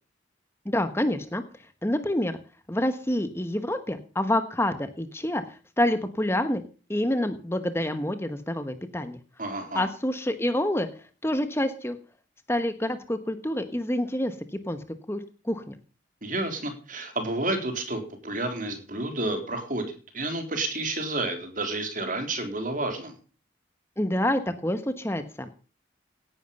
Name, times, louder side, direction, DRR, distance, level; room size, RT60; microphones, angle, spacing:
voice 1, 0.6-1.4 1.8-2.4 2.7-6.6 6.9-9.2 9.7-10.9 11.2-12.0 12.5-15.7 24.0-25.6, left 1 dB, 15° left, 10 dB, 1.1 m, -27 dB
voice 2, 9.4-9.9 16.2-23.1, right 2 dB, 45° right, 6 dB, 3.8 m, -30 dB
17.5 x 11.0 x 5.4 m, 0.37 s
head